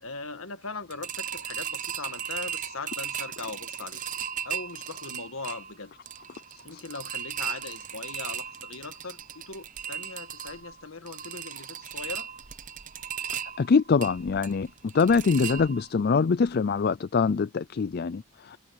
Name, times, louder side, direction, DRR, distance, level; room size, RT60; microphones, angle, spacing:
voice 1, 0.0-4.0 4.4-5.9 6.6-12.3 18.5-18.6, left 4 dB, 65° left, 1.6 m, -40 dB
sound 1, 0.9-16.1 16.4-16.5 16.9-17.0, right 8 dB, 35° right, 0.7 m, -37 dB
voice 2, 13.6-18.6, left 5 dB, 45° left, 0.4 m, -24 dB
head